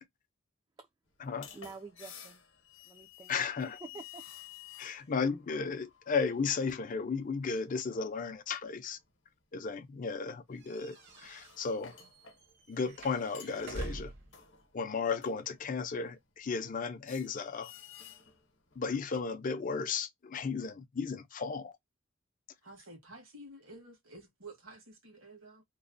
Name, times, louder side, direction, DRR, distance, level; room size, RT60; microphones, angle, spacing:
sound 1, 1.1-9.1 9.4-9.7 10.5-16.7 17.1-19.4, left 9 dB, 65° left, 0.8 m, -54 dB
voice 1, 1.5-2.4 2.9-3.3 3.8-4.2 4.9-5.1, right 4 dB, 20° right, 0.3 m, -48 dB
voice 2, 3.3-3.8 4.8-9.0 9.5-11.0 11.2-11.9 12.7-14.1 14.7-17.7 18.8-21.7, left 5 dB, 40° left, 0.5 m, -34 dB
sound 2, 10.6-14.4, right 1 dB, 55° right, 0.9 m, -45 dB
voice 3, 22.6-25.6, right 2 dB, 70° right, 1.4 m, -51 dB
3.0 x 2.1 x 2.5 m
head